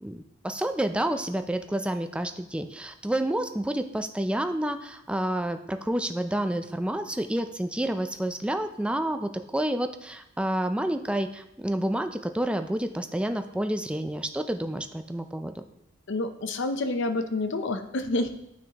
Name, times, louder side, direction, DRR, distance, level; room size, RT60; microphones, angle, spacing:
voice 1, 0.0-15.6, right 1 dB, 5° right, 7 dB, 0.4 m, -29 dB
voice 2, 16.1-18.3, left 2 dB, 65° left, 8 dB, 0.6 m, -28 dB
9.3 x 6.0 x 3.0 m, 0.86 s
head